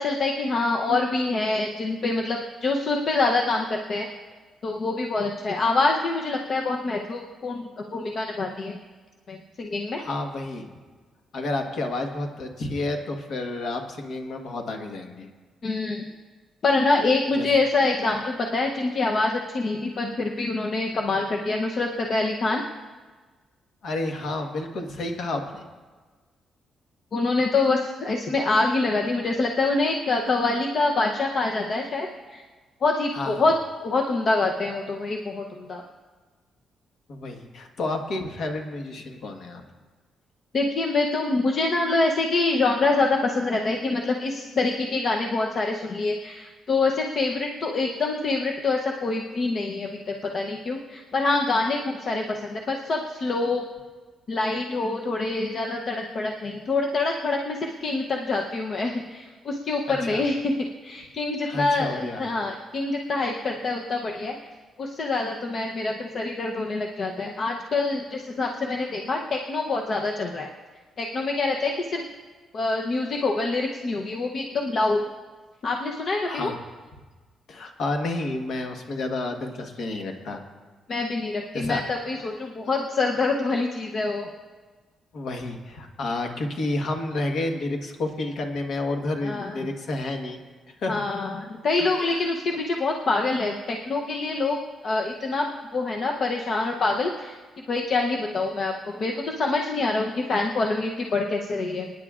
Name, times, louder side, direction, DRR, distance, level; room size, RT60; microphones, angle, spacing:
voice 1, 0.0-4.1 4.6-8.8 9.3-10.0 15.6-16.0 16.6-22.6 27.1-32.4 32.8-33.5 33.8-35.8 40.5-53.6 54.3-60.5 60.8-64.4 64.8-70.5 71.0-72.0 72.5-75.0 75.6-76.5 80.9-84.3 89.2-89.6 90.9-97.4 97.7-101.9, left 3 dB, 40° left, 1 dB, 0.7 m, -25 dB
voice 2, 10.0-10.7 11.3-15.3 17.3-17.5 23.8-25.6 33.1-33.5 37.1-39.6 60.0-60.2 61.4-62.2 76.3-76.6 77.5-80.4 81.5-81.8 82.1-82.2 85.1-90.4 90.8-91.0 91.8-92.3, left 2 dB, 55° left, 4 dB, 1.3 m, -30 dB
26.5 x 9.8 x 2.4 m, 1.4 s
cardioid pair, 160°, 0 cm